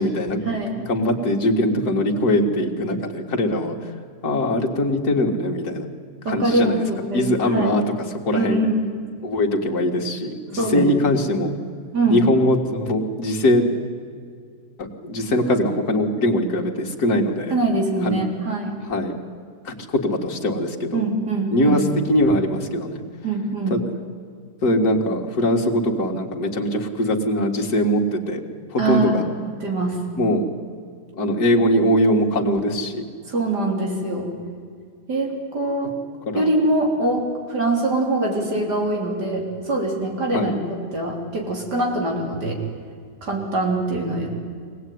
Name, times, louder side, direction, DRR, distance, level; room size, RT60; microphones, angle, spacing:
voice 1, 0.0-0.5 0.9-3.8 4.2-5.9 6.3-6.8 7.1-7.8 8.1-8.6 9.2-11.5 12.1-13.7 14.8-17.6 18.0-18.2 18.9-19.1 19.6-21.0 21.5-23.0 23.7-23.8 24.6-28.4 28.7-29.3 30.2-30.5 31.1-33.0 36.3-36.5 40.3-40.6, left 1 dB, 70° left, 0 dB, 2.6 m, -21 dB
voice 2, 6.2-7.7 8.3-8.8 10.6-10.9 11.9-12.3 17.5-18.8 20.9-21.8 23.2-23.8 28.8-29.1 29.4-30.0 33.3-34.3 35.1-35.9 36.3-42.6 43.2-44.3, right 2 dB, 85° right, 0 dB, 4.3 m, -23 dB
24.0 x 18.0 x 9.5 m, 2.1 s
omnidirectional pair, 1.7 m